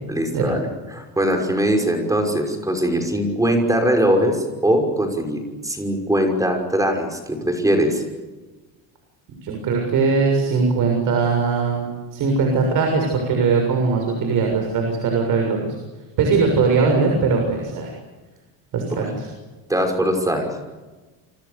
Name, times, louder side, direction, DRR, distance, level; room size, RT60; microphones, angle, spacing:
voice 1, 0.1-8.0 19.7-20.5, right 1 dB, 10° right, 4 dB, 5.8 m, -21 dB
voice 2, 9.4-15.8 16.2-17.9 18.7-19.3, right 4 dB, 55° right, 2 dB, 7.0 m, -20 dB
29.5 x 26.5 x 7.0 m, 1.2 s
cardioid pair, 155°, 39 cm